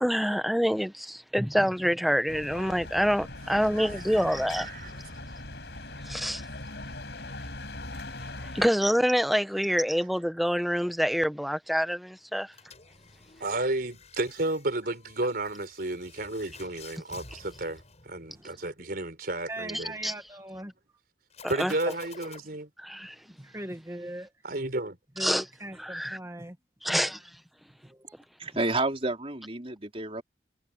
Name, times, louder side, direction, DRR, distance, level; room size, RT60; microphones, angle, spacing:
voice 1, 0.0-4.7 6.0-6.4 8.5-12.5 19.7-20.1 21.6-21.7 22.9-23.1 25.2-25.4 25.8-26.2 26.8-27.2, equal, ahead, 1.1 m, -26 dB
sound 1, 2.3-8.7, left 2 dB, 65° left, 6.1 m, -40 dB
voice 2, 3.8-5.2 13.4-20.0 21.5-22.7 24.4-25.0, right 2 dB, 55° right, 4.4 m, -32 dB
sound 2, 12.5-18.6 21.3-22.4, left 4 dB, 40° left, 7.1 m, -51 dB
voice 3, 19.5-20.7 23.2-24.3 25.2-26.6 27.8-28.2, right 1 dB, 15° right, 2.0 m, -40 dB
voice 4, 28.4-30.2, right 2 dB, 30° right, 4.4 m, -30 dB
head